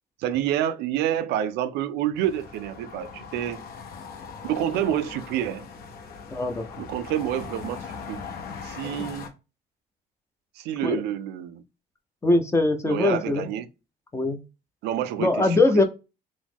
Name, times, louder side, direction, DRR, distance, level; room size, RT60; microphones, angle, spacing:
voice 1, 0.2-3.6 4.4-5.7 6.8-8.2 8.6-9.3 10.6-11.6 12.8-13.7 14.8-15.8, right 11 dB, 85° right, 0.4 m, -28 dB
sound 1, 2.2-9.3, left 5 dB, 65° left, 0.6 m, -40 dB
voice 2, 6.3-6.6 10.8-11.0 12.2-13.5 14.1-14.4 15.2-15.8, left 2 dB, 15° left, 0.5 m, -21 dB
2.9 x 2.0 x 3.4 m
cardioid pair, 110°, 17 cm